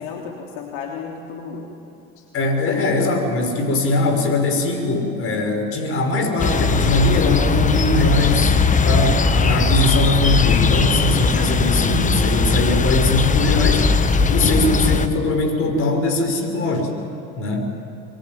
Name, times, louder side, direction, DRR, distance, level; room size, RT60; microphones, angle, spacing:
voice 1, 0.0-1.7 2.2-2.3 2.7-2.9, left 7 dB, 75° left, 0 dB, 3.3 m, -33 dB
voice 2, 2.3-13.9 14.3-16.9 17.4-17.7, left 2 dB, 45° left, 4 dB, 5.7 m, -21 dB
sound 1, 6.4-15.1, left 4 dB, 25° left, 1.3 m, -18 dB
24.5 x 22.5 x 9.4 m, 2.7 s
supercardioid pair, 100°, 30 cm